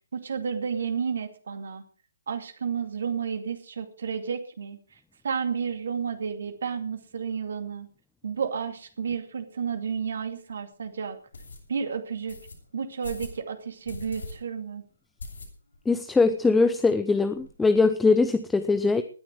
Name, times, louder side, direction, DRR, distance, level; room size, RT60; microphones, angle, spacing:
voice 1, 0.1-1.8 2.3-4.8 5.2-7.9 8.2-11.2 11.7-12.4 12.7-14.8, right 6 dB, 55° right, 7 dB, 2.4 m, -31 dB
sound 1, 9.9-10.0 10.5-10.6 11.3-11.6 12.3-12.6 13.0-13.4 13.9-14.3 14.6-14.7 15.2-15.8 16.2-16.3 16.5-16.6 16.9-17.5, left 3 dB, 65° left, 7.7 m, -41 dB
voice 2, 15.9-19.0, left 3 dB, 5° left, 11 dB, 0.7 m, -21 dB
19.0 x 10.5 x 4.8 m, 0.40 s
figure-of-eight pair, 135°, 0 cm